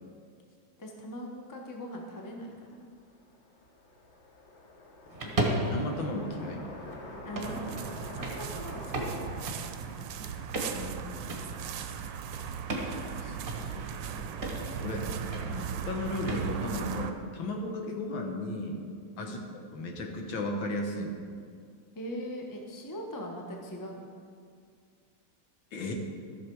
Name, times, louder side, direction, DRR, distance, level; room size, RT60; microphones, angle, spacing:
voice 1, 0.8-2.9 5.2-5.3 7.2-9.3 9.9-10.3 15.0-15.6 19.2-19.4 21.9-24.1, equal, 20° left, 1 dB, 0.5 m, -41 dB
sound 1, 2.6-9.3, left 2 dB, 45° left, 1.0 m, -47 dB
sound 2, 5.1-16.7, right 1 dB, 30° right, 1.2 m, -37 dB
voice 2, 5.7-6.7 10.7-11.3 13.1-13.4 13.6-14.1 14.8-18.8 19.2-19.4 19.7-21.2 25.7-25.9, left 1 dB, 70° left, 2 dB, 1.9 m, -35 dB
sound 3, 7.4-17.1, right 8 dB, 75° right, 1.2 m, -38 dB
13.5 x 6.6 x 4.7 m, 2.2 s
omnidirectional pair, 2.3 m